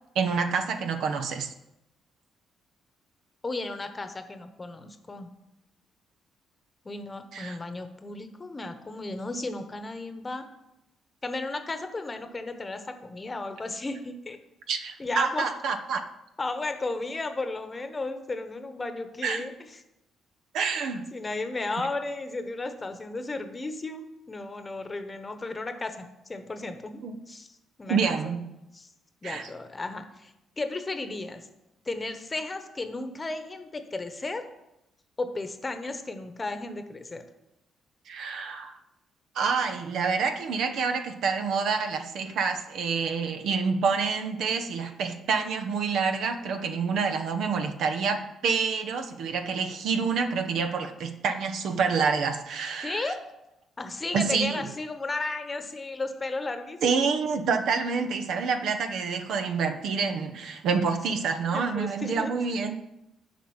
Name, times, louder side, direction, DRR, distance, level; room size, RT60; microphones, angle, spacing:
voice 1, 0.1-1.5 7.3-7.6 14.7-16.0 19.2-19.5 20.5-21.0 27.0-27.1 27.9-28.5 29.2-29.5 38.1-38.8 39.3-53.1 54.1-54.6 56.8-62.8, right 5 dB, 75° right, 6 dB, 0.9 m, -27 dB
voice 2, 3.4-5.3 6.8-10.4 11.2-14.4 15.0-15.5 16.4-19.8 21.1-28.2 28.7-28.9 29.2-31.4 31.8-34.4 35.2-37.2 52.8-53.2 53.8-57.0 61.5-62.3, left 2 dB, 25° left, 8 dB, 1.0 m, -34 dB
7.6 x 5.2 x 7.1 m, 0.90 s
cardioid pair, 90°, 0 cm